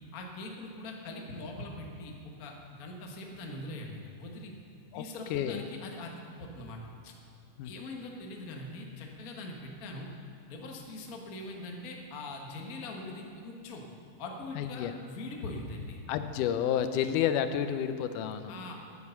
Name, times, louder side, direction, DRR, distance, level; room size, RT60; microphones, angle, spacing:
voice 1, 0.1-4.5 4.9-7.1 7.6-10.1 10.5-13.8 14.2-16.0 18.5-18.8, left 2 dB, 55° left, 1 dB, 1.0 m, -42 dB
voice 2, 4.9-5.6 7.6-7.7 14.6-14.9 16.1-18.5, left 9 dB, 85° left, 10 dB, 2.2 m, -30 dB
9.5 x 9.5 x 6.9 m, 2.6 s
omnidirectional pair, 3.6 m